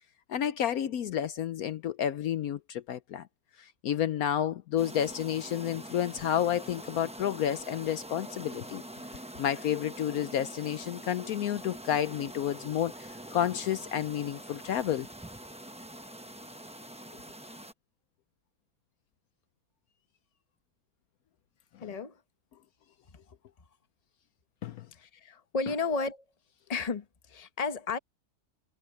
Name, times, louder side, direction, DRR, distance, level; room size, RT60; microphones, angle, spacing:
voice 1, 0.3-3.3 3.6-8.8 9.4-15.1 24.6-24.9, left 10 dB, 70° left, 1.1 m, -30 dB
sound 1, 4.8-17.7, right 1 dB, 5° right, 0.6 m, -45 dB
voice 2, 21.8-22.2 24.9-26.2 26.7-28.0, left 4 dB, 25° left, 1.0 m, -33 dB
omnidirectional pair, 1.7 m